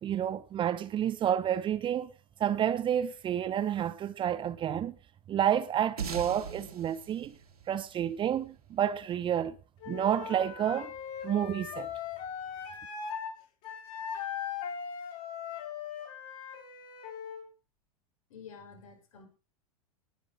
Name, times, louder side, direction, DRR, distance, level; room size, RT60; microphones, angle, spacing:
voice 1, 0.0-2.1 2.4-4.9 5.3-7.3 7.7-9.5 9.9-10.9 11.2-11.9, right 10 dB, 25° right, 1.0 m, -30 dB
sound 1, 6.0-8.8, right 6 dB, 75° right, 2.5 m, -41 dB
Wind instrument woodwind instrument, 9.8-13.3 13.6-17.4, left 7 dB, 45° left, 6.2 m, -39 dB
voice 2, 18.3-19.3, left 6 dB, 65° left, 5.6 m, -49 dB
20.0 x 7.1 x 5.0 m
figure-of-eight pair, 90°, 19 cm